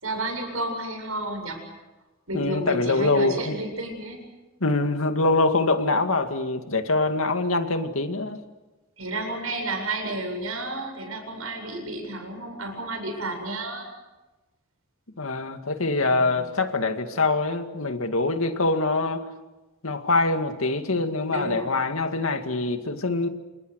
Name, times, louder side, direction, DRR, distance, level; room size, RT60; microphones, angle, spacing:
voice 1, 0.0-1.6 2.3-4.2 9.0-13.9 16.0-16.6 21.3-21.7, right 1 dB, 85° right, 4 dB, 7.9 m, -31 dB
voice 2, 2.3-3.6 4.6-8.4 15.2-19.3 19.8-23.3, left 3 dB, 80° left, 7 dB, 2.2 m, -24 dB
29.0 x 27.0 x 6.5 m, 1.1 s
head